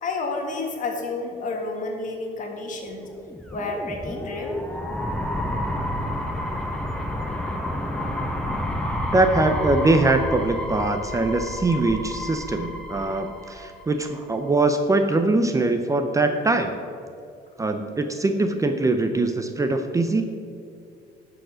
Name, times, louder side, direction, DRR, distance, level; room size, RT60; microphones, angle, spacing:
voice 1, 0.0-3.1 3.5-4.7, left 3 dB, 50° left, 2 dB, 1.8 m, -30 dB
sound 1, 3.2-14.1, left 1 dB, 5° left, 1.1 m, -30 dB
voice 2, 9.1-16.7 17.6-20.2, right 2 dB, 20° right, 6 dB, 0.6 m, -22 dB
11.5 x 4.8 x 6.3 m, 2.4 s
cardioid pair, 110°, 17 cm